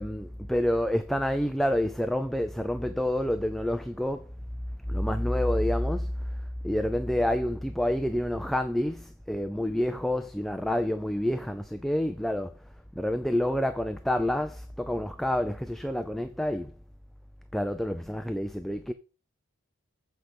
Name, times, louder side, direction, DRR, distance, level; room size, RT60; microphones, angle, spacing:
voice 1, 0.0-4.4 4.9-6.4 6.6-12.7 13.0-16.7 17.5-18.9, left 1 dB, ahead, 0.4 m, -28 dB
8.2 x 5.1 x 6.3 m
head